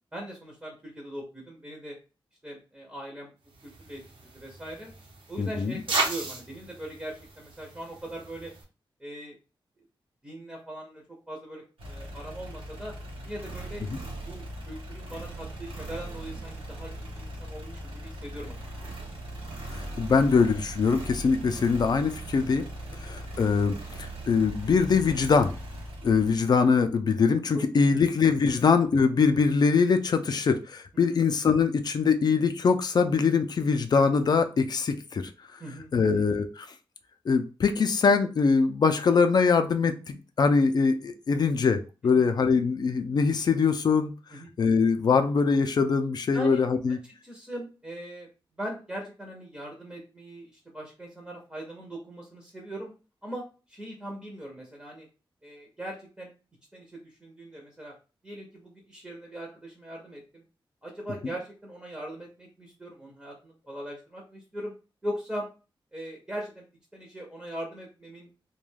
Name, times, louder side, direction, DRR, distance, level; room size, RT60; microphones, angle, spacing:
voice 1, 0.1-2.0 2.4-3.3 3.6-4.9 5.3-8.5 9.0-9.3 10.2-12.9 13.2-13.8 14.2-18.6 18.9-19.0 22.8-22.9 27.5-28.0 31.0-31.2 35.6-36.2 42.0-42.3 44.3-44.5 46.3-46.6 47.0-48.3 48.6-52.9 53.2-53.4 53.7-55.1 55.4-56.3 56.7-57.9 58.2-60.4 60.8-64.7 65.0-65.5 65.9-66.6 66.9-68.3, right 1 dB, 10° right, 0 dB, 0.6 m, -40 dB
sound 1, 3.5-8.6, right 3 dB, 65° right, 0.7 m, -35 dB
voice 2, 5.4-5.8 19.7-22.6 23.0-25.5 26.0-35.2 35.9-36.7 37.3-44.1 44.6-47.0, left 5 dB, 50° left, 8 dB, 0.4 m, -23 dB
sound 2, 11.8-26.9, right 1 dB, 90° right, 0.9 m, -39 dB
2.3 x 2.2 x 3.2 m, 0.33 s
wide cardioid pair, 140°, 9 cm